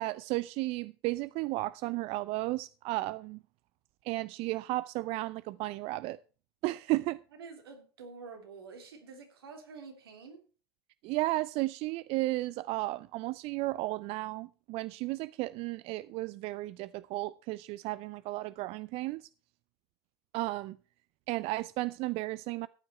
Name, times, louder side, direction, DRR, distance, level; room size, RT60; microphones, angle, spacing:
voice 1, 0.0-3.4 4.0-6.2 6.6-7.2 11.0-19.3 20.3-20.8 21.3-22.7, right 19 dB, 55° right, 0.5 m, -34 dB
voice 2, 7.3-10.4, right 4 dB, 85° right, 3.2 m, -48 dB
14.0 x 9.3 x 4.4 m
hypercardioid pair, 80°, 12 cm